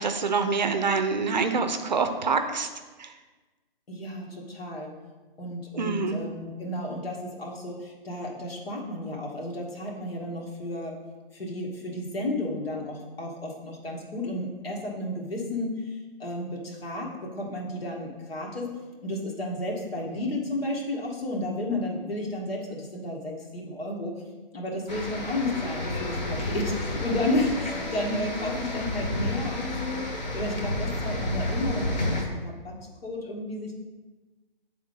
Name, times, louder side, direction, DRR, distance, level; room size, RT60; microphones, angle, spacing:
voice 1, 0.0-2.7 3.0-3.1 5.8-6.2, right 4 dB, 50° right, 8 dB, 0.5 m, -26 dB
voice 2, 3.9-4.9 5.4-11.0 11.3-15.9 16.2-18.7 19.0-24.1 24.5-30.0 30.3-33.7, left 1 dB, 80° left, -1 dB, 1.7 m, -32 dB
sound 1, 24.9-32.2, left 1 dB, 45° left, 1.2 m, -31 dB
8.7 x 3.6 x 3.8 m, 1.3 s
hypercardioid pair, 170°, 29 cm